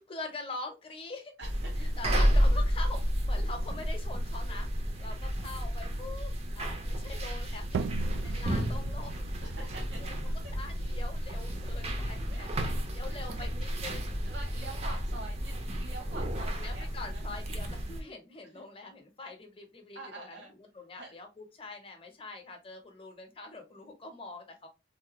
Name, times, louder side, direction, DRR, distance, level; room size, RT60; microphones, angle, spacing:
voice 1, 0.0-1.4 1.8-7.9 8.2-9.3 10.0-10.1 10.6-12.5 12.9-14.2 14.5-14.9 16.5-20.4 20.7-24.7, left 3 dB, 30° left, 4 dB, 0.7 m, -44 dB
sound 1, 1.4-18.0, equal, 35° right, 0.5 m, -31 dB
voice 2, 1.4-1.9 9.4-10.0 12.3-12.4 13.0-13.5 14.2-17.2 18.0-18.2 18.5-18.6 19.9-20.5 21.0-21.2, right 2 dB, 65° right, 0 dB, 0.9 m, -46 dB
sound 2, 7.7-13.2, right 6 dB, 90° right, 0.3 m, -41 dB
3.2 x 2.2 x 2.9 m, 0.25 s
head